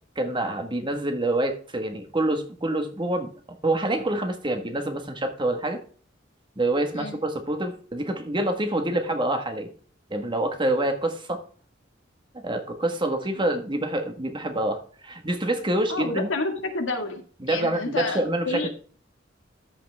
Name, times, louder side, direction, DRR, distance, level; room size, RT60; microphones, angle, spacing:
voice 1, 0.2-3.3 3.6-5.8 6.6-9.7 10.1-11.4 12.3-16.3 17.4-18.7, right 1 dB, 25° right, 6 dB, 1.5 m, -26 dB
voice 2, 15.9-18.7, left 2 dB, 80° left, 4 dB, 2.0 m, -30 dB
13.0 x 5.8 x 3.5 m, 0.44 s
head